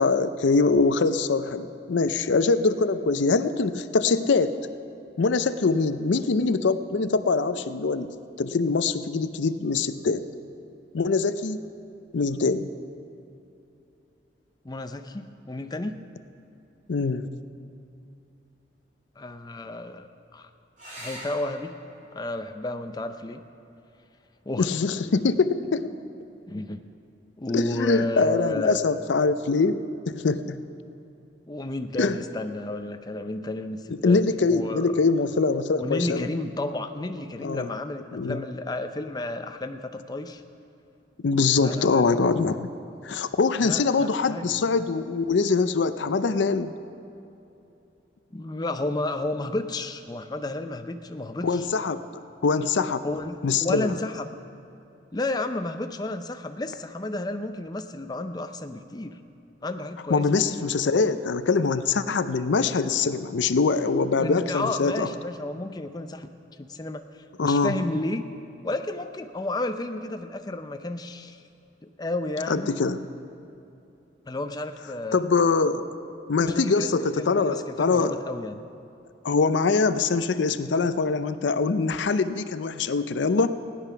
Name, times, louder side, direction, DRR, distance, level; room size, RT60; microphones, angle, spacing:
voice 1, 0.0-4.6 5.2-10.2 10.9-11.7 12.1-12.7 16.9-17.3 24.6-25.9 27.5-29.8 30.1-30.6 32.0-32.2 33.9-36.3 37.4-37.7 38.1-38.4 41.2-42.7 43.0-46.7 51.4-52.1 52.4-53.1 53.4-53.9 60.1-65.1 67.4-67.8 72.5-73.0 75.1-75.9 76.3-78.1 79.2-83.6, left 4 dB, 80° left, 11 dB, 0.5 m, -23 dB
voice 2, 14.6-16.0 19.2-20.5 21.0-21.7 22.1-23.4 24.5-24.7 26.5-26.8 27.4-28.8 31.5-34.9 35.8-40.4 41.6-42.2 43.6-44.5 48.3-51.6 53.0-54.3 55.1-59.2 59.6-60.7 64.2-66.3 66.6-67.0 67.4-68.2 68.6-71.4 71.8-72.7 74.3-75.2 76.4-78.6, left 2 dB, 20° left, 7 dB, 0.5 m, -32 dB
sound 1, 20.8-25.8 27.7-28.3 31.8-31.9 32.2-32.3, right 1 dB, 45° right, 4.0 m, -48 dB
16.5 x 10.0 x 5.7 m, 2.8 s
head